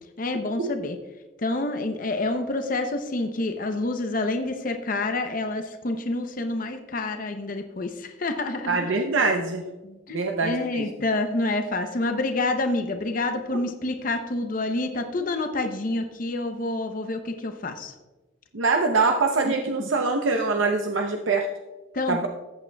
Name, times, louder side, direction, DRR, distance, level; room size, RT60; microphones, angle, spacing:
voice 1, 0.2-1.0 1.4-8.8 9.8-17.9 19.5-19.6 19.8-19.9 21.9-22.3, left 2 dB, 45° left, 6 dB, 0.6 m, -28 dB
voice 2, 8.7-9.6 10.1-10.9 13.5-13.6 18.5-21.5 22.1-22.3, right 3 dB, 75° right, 3 dB, 0.7 m, -24 dB
14.0 x 8.5 x 2.3 m, 1.2 s
head